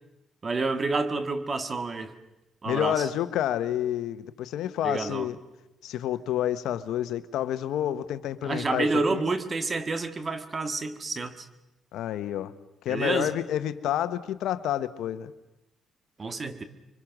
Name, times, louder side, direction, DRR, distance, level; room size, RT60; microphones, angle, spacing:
voice 1, 0.4-2.1 2.6-3.1 4.8-5.3 8.4-11.5 12.9-13.3 16.2-16.6, right 3 dB, 35° right, 10 dB, 1.9 m, -29 dB
voice 2, 2.6-5.4 5.8-9.2 11.9-12.5 12.8-15.3, left 11 dB, 85° left, 13 dB, 1.1 m, -29 dB
26.0 x 24.0 x 6.1 m, 0.95 s
cardioid pair, 90°, 0 cm